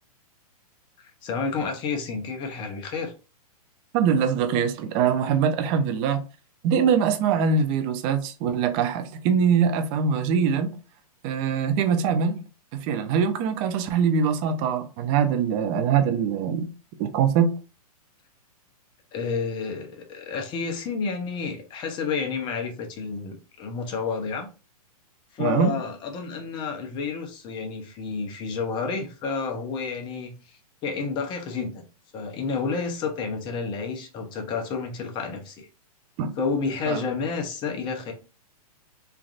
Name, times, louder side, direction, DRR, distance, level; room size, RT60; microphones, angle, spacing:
voice 1, 1.0-3.1 19.1-24.5 25.3-31.8 32.1-35.7 36.4-38.1, left 5 dB, 25° left, 0.6 m, -30 dB
voice 2, 3.9-6.2 6.6-10.8 11.2-12.4 12.7-16.7 17.0-17.5 25.4-25.7 36.2-36.3 36.9-37.0, right 6 dB, 30° right, 0.4 m, -23 dB
3.2 x 2.4 x 2.4 m
hypercardioid pair, 135°, 20 cm